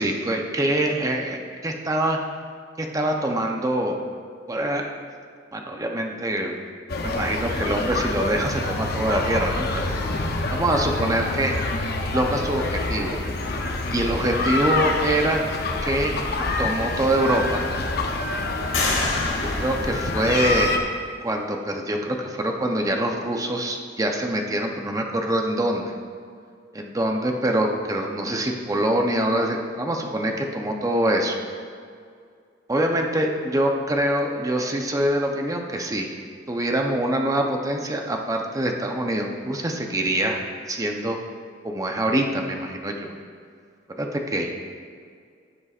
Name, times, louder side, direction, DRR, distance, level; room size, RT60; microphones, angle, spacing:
voice 1, 0.0-2.2 2.8-4.0 4.5-4.9 5.5-6.6 7.0-9.9 10.5-11.6 12.1-13.2 13.9-15.5 15.8-16.2 16.6-17.6 19.6-20.7 21.2-25.9 26.7-31.4 32.7-36.1 36.5-40.4 40.7-41.2 41.6-43.1 44.0-44.5, right 1 dB, 20° right, 2 dB, 0.7 m, -24 dB
sound 1, 6.9-20.8, left 2 dB, 60° left, 0.8 m, -27 dB
sound 2, 17.7-17.8 18.7-20.7, left 3 dB, 90° left, 2.2 m, -29 dB
15.5 x 7.0 x 2.5 m, 2.2 s
head